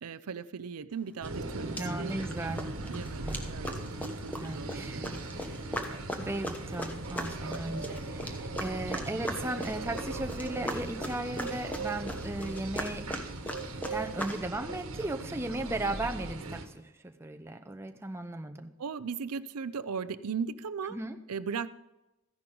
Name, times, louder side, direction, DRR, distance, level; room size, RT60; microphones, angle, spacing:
voice 1, 0.0-2.1 2.9-3.7 4.0-5.1 18.8-21.0 21.3-21.7, right 6 dB, 90° right, 14 dB, 0.5 m, -37 dB
sound 1, 1.2-1.3 1.8-2.3 2.6-14.4, equal, 5° left, 1.0 m, -39 dB
sound 2, 1.2-16.6, right 2 dB, 70° right, 1.4 m, -39 dB
voice 2, 1.8-2.6 3.2-3.4 4.4-5.6 6.2-13.1 13.9-18.7 20.9-21.2, right 2 dB, 10° right, 5 dB, 0.6 m, -36 dB
14.0 x 10.5 x 3.9 m, 0.99 s
head